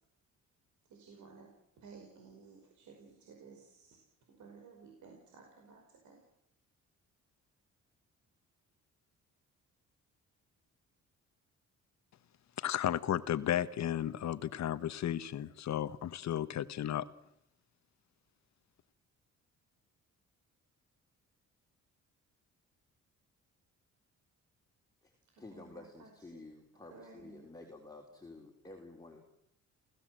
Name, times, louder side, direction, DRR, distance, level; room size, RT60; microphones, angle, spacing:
voice 1, 0.9-1.5 1.8-4.0 4.3-6.2 25.3-26.5 26.7-27.5, right 5 dB, 70° right, 5.3 m, -56 dB
voice 2, 12.6-17.1, left 11 dB, 65° left, 1.3 m, -34 dB
voice 3, 25.0-29.2, left 2 dB, 10° left, 3.7 m, -52 dB
29.0 x 16.0 x 7.7 m
cardioid pair, 90°, 30 cm